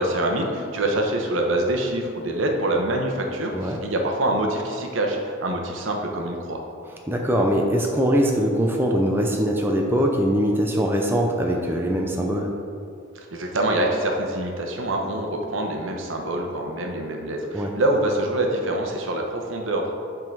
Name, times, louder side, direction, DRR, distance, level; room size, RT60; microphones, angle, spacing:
voice 1, 0.0-6.6 13.1-19.9, right 1 dB, 70° right, 1 dB, 0.9 m, -25 dB
voice 2, 7.1-12.5 17.5-17.7, equal, 10° right, 0 dB, 0.4 m, -22 dB
7.4 x 3.8 x 4.6 m, 2.4 s
head